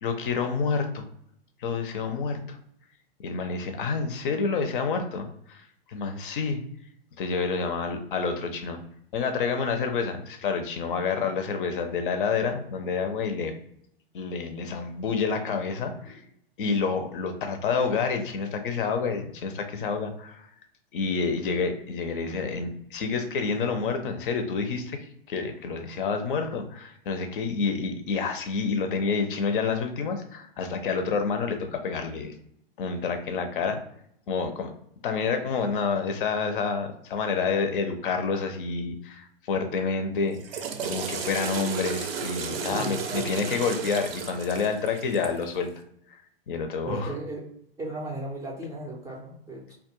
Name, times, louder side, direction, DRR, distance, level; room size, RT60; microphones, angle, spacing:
voice 1, 0.0-1.1 1.6-2.6 3.2-6.6 7.2-8.8 9.1-13.5 14.1-16.2 16.6-20.5 20.9-25.0 25.3-32.3 32.8-33.8 34.3-34.7 35.0-45.7 46.5-47.1, left 5 dB, 60° left, 6 dB, 0.5 m, -28 dB
Water / Toilet flush, 40.2-45.5, right 6 dB, 75° right, 0.5 m, -34 dB
voice 2, 42.6-43.5 46.8-47.5 47.8-49.7, right 1 dB, 10° right, -3 dB, 0.4 m, -36 dB
2.3 x 2.1 x 2.8 m, 0.72 s
hypercardioid pair, 105°, 30 cm